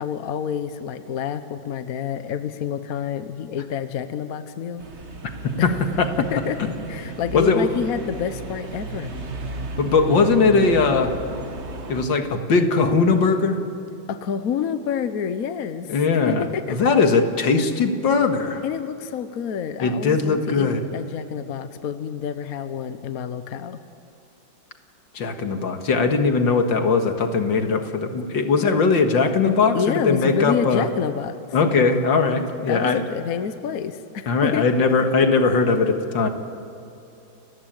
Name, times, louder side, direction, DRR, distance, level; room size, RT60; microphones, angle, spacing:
voice 1, 0.0-4.8 5.6-5.8 6.2-6.6 6.9-9.1 14.1-15.9 16.3-16.8 18.6-23.8 29.7-31.4 32.7-34.6, left 7 dB, 55° left, 11 dB, 1.2 m, -28 dB
sound 1, 4.8-12.0, right 3 dB, 40° right, 1.6 m, -34 dB
voice 2, 7.3-7.7 9.8-11.1 11.9-13.6 15.9-18.6 19.8-20.8 25.1-30.9 31.5-33.0 34.3-36.3, left 4 dB, 70° left, 6 dB, 2.3 m, -20 dB
30.0 x 15.0 x 9.0 m, 2.7 s
omnidirectional pair, 2.1 m